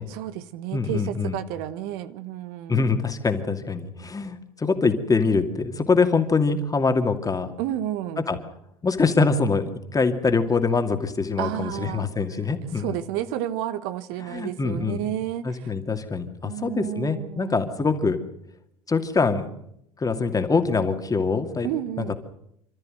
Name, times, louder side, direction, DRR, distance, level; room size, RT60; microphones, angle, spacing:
voice 1, 0.0-2.9 7.6-8.2 11.4-12.1 12.7-15.7 16.4-17.6 21.6-22.1, right 12 dB, 60° right, 13 dB, 1.1 m, -31 dB
voice 2, 0.7-1.4 2.7-7.5 8.3-8.4 8.8-13.0 14.3-15.0 15.4-18.2 18.9-19.5 20.0-21.7 22.0-22.1, left 4 dB, 20° left, 7 dB, 2.4 m, -24 dB
27.0 x 13.5 x 7.8 m, 0.76 s
figure-of-eight pair, 70°, 18 cm